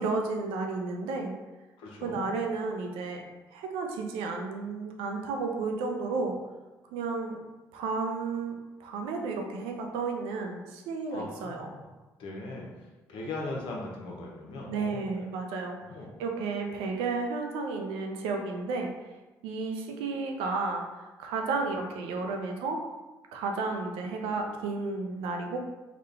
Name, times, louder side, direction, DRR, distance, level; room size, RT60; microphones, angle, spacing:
voice 1, 0.0-1.3 2.0-3.2 3.5-6.4 6.9-7.4 7.7-8.5 8.8-11.7 14.7-15.8 16.2-18.9 19.4-20.8 21.2-22.8 23.3-25.6, right 4 dB, 75° right, 2 dB, 0.6 m, -32 dB
voice 2, 1.8-2.3 11.1-11.9 12.2-12.7 13.1-15.3 15.9-16.1, left 2 dB, 70° left, -1 dB, 0.8 m, -39 dB
3.7 x 2.3 x 3.3 m, 1.1 s
hypercardioid pair, 55°, 9 cm